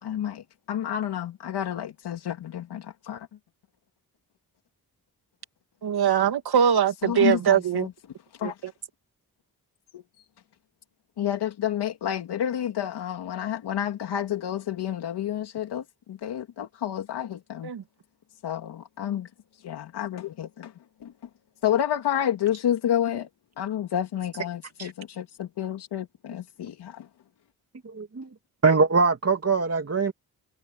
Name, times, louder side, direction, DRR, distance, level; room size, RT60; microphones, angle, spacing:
voice 1, 0.0-3.3 6.6-6.7 7.0-7.9 8.3-8.6 9.9-10.2 11.2-17.7 18.4-20.7 21.0-21.1 21.6-23.3 23.6-27.1, left 10 dB, 85° left, 2.7 m, -30 dB
voice 2, 5.8-7.9 8.4-8.5 17.6-17.8, right 8 dB, 70° right, 2.3 m, -22 dB
voice 3, 27.8-28.3 28.6-30.1, right 4 dB, 40° right, 2.7 m, -22 dB
cardioid pair, 50°, 39 cm